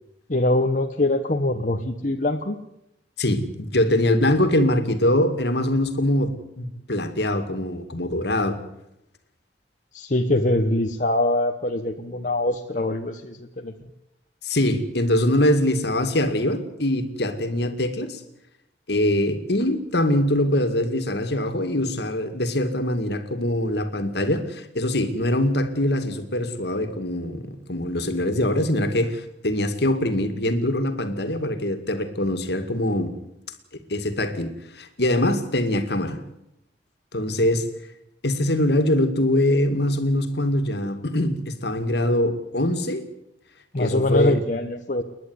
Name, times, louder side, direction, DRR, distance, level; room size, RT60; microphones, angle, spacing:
voice 1, 0.3-2.6 9.9-13.7 43.7-45.0, left 1 dB, 45° left, 3 dB, 1.1 m, -23 dB
voice 2, 3.2-8.6 14.4-18.2 18.9-33.1 33.9-36.2 37.1-37.7 38.2-43.1 43.8-44.4, left 1 dB, 60° left, 8 dB, 2.3 m, -23 dB
29.5 x 11.0 x 9.7 m, 0.84 s
head